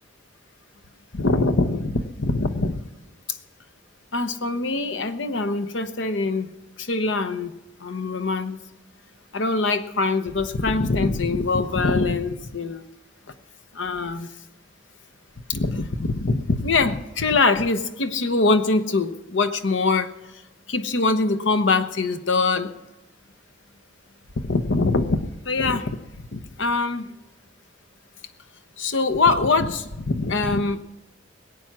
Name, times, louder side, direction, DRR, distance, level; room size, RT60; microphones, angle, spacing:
voice 1, 1.1-2.8 3.3-3.4 4.1-6.5 6.8-7.5 7.8-8.6 9.3-12.8 13.7-14.3 15.5-20.1 20.7-22.7 24.4-26.0 26.3-27.1 28.8-30.8, left 3 dB, 65° left, 9 dB, 0.9 m, -23 dB
20.5 x 8.6 x 6.0 m, 0.99 s
head